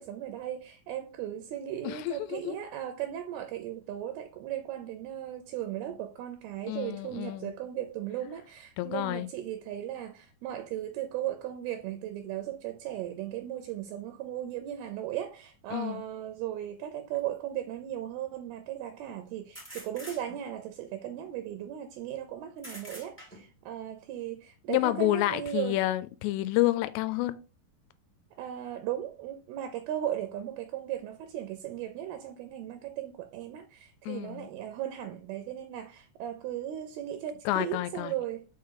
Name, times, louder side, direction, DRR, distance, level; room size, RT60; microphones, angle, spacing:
voice 1, 0.0-25.8 28.3-38.5, right 11 dB, 80° right, 2.4 m, -37 dB
voice 2, 1.8-2.6 6.7-7.5 8.8-9.3 15.7-16.0 24.7-27.3 34.1-34.5 37.5-38.1, left 16 dB, 90° left, 2.7 m, -29 dB
sound 1, 17.1-17.2 19.5-20.6 22.6-23.6, equal, 5° left, 0.8 m, -46 dB
5.9 x 4.8 x 3.8 m
omnidirectional pair, 4.9 m